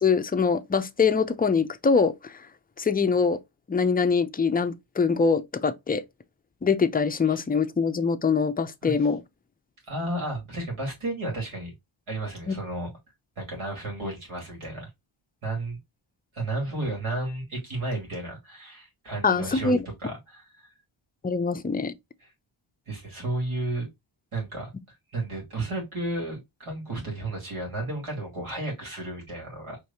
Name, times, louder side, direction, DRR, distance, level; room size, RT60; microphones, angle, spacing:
voice 1, 0.0-2.3 2.8-3.4 3.7-6.0 6.6-9.2 12.5-12.6 19.2-19.8 21.2-21.9, left 5 dB, 20° left, 0.4 m, -23 dB
voice 2, 9.9-11.7 12.1-12.9 13.4-14.9 15.4-15.8 16.3-19.7 20.0-20.7 22.2-22.3 22.9-23.9 24.3-24.7 25.1-29.8, right 2 dB, 75° right, 2.7 m, -33 dB
4.7 x 3.2 x 2.8 m
wide cardioid pair, 85°, 50 cm